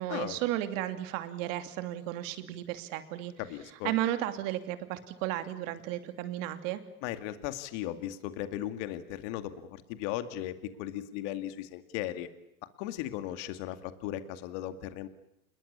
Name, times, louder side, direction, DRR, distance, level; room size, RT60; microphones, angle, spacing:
voice 1, 0.0-3.3 3.8-6.8, right 13 dB, 55° right, 9 dB, 3.0 m, -34 dB
voice 2, 3.4-3.9 7.0-12.3 12.8-15.1, left 13 dB, 50° left, 10 dB, 2.2 m, -37 dB
28.0 x 21.5 x 8.7 m, 0.81 s
supercardioid pair, 130°, 45 cm